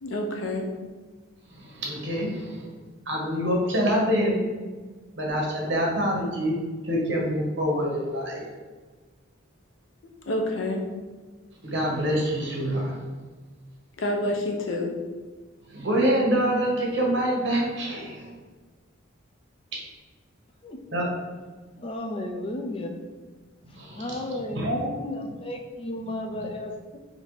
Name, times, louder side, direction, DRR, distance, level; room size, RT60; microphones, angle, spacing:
voice 1, 0.0-0.6 10.3-10.8 14.0-14.9, left 1 dB, 80° left, 1 dB, 0.6 m, -28 dB
voice 2, 1.5-2.7 3.1-4.4 5.2-6.5 6.8-8.4 11.6-13.0 15.7-18.3 20.9-21.1 23.7-24.2 24.5-24.9, equal, 65° right, -2 dB, 1.0 m, -26 dB
voice 3, 20.6-21.0 21.8-23.0 23.7-27.0, left 1 dB, 25° left, 3 dB, 0.3 m, -34 dB
4.0 x 2.7 x 3.1 m, 1.4 s
head